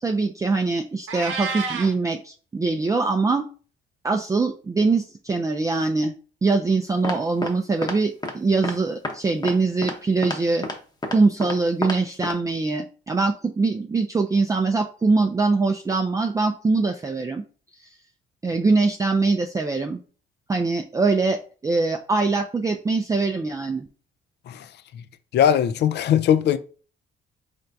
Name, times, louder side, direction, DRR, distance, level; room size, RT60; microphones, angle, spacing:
voice 1, 0.0-3.5 4.0-6.1 6.4-10.7 11.1-17.4 18.4-20.0 20.5-23.9, right 3 dB, 15° right, 0.3 m, -23 dB
Meow, 1.1-1.9, right 4 dB, 80° right, 0.8 m, -29 dB
sound 1, 7.0-7.5 7.8-8.0 8.2-8.3 8.6-8.7 9.0-9.1 9.4-9.5 9.8-10.0 10.2-10.4 10.6-10.8 11.0-11.6 11.8-12.0 12.2-12.3, left 1 dB, 20° left, 0.8 m, -28 dB
voice 2, 25.3-26.6, left 9 dB, 60° left, 0.4 m, -20 dB
4.3 x 3.4 x 2.6 m
cardioid pair, 90°, 20 cm